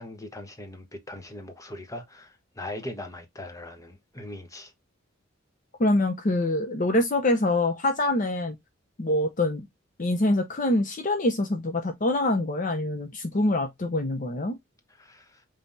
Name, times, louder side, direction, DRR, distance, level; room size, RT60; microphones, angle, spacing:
voice 1, 0.0-4.7 15.0-15.4, left 1 dB, 15° left, 1.0 m, -40 dB
voice 2, 5.8-8.5 9.0-9.6 10.0-14.6, left 1 dB, 40° left, 0.7 m, -25 dB
5.4 x 3.4 x 2.6 m
head